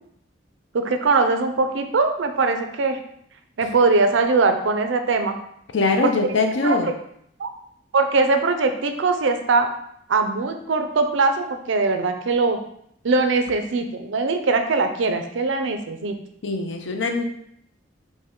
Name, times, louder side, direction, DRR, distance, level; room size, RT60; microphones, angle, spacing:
voice 1, 0.7-3.0 3.6-5.4 6.0-6.3 6.6-6.8 7.4-7.5 7.9-9.7 10.1-12.6 13.0-16.1, right 3 dB, 80° right, 7 dB, 0.5 m, -21 dB
voice 2, 5.7-6.9 16.0-16.1 16.4-17.2, left 3 dB, 70° left, 5 dB, 0.6 m, -22 dB
5.3 x 2.2 x 3.7 m, 0.72 s
head